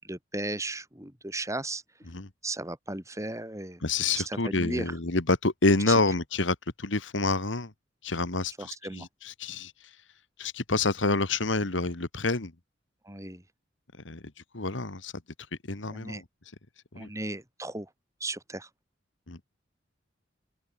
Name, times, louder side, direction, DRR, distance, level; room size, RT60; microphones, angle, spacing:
voice 1, 0.0-1.8 2.4-3.8 4.1-5.0 5.9-6.0 8.6-9.1 13.0-13.4 15.9-16.2 17.0-17.9 18.2-18.7, right 2 dB, 15° right, 5.6 m, -35 dB
voice 2, 3.8-7.7 8.0-9.7 10.4-12.5 14.0-14.2 14.5-15.1 15.7-16.2 16.9-17.1 19.3-19.4, left 3 dB, 80° left, 2.0 m, -28 dB
open air
head